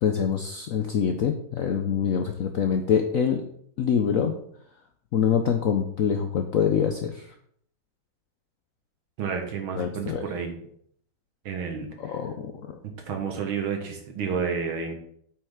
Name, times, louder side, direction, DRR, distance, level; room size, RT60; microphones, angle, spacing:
voice 1, 0.0-3.4 3.8-4.3 5.1-7.1 9.8-10.2 12.0-12.5, left 7 dB, 90° left, 6 dB, 0.7 m, -25 dB
voice 2, 9.2-10.5 11.5-12.2 12.8-14.9, right 6 dB, 90° right, 3 dB, 2.1 m, -30 dB
8.5 x 5.8 x 3.6 m, 0.66 s
omnidirectional pair, 2.2 m